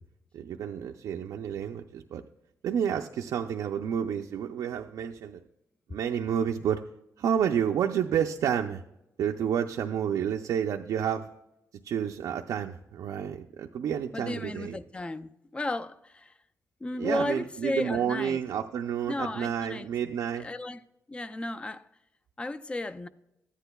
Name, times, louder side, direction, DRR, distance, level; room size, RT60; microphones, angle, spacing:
voice 1, 0.3-2.2 2.6-5.4 5.9-6.9 7.2-8.8 9.2-11.3 11.8-14.8 17.0-20.5, right 8 dB, 75° right, 0.5 m, -30 dB
voice 2, 14.1-16.3 16.8-18.4 19.1-19.9 20.3-20.8 21.1-21.9 22.4-23.1, left 2 dB, 20° left, 0.4 m, -34 dB
14.0 x 9.9 x 2.3 m
wide cardioid pair, 145°, 6 cm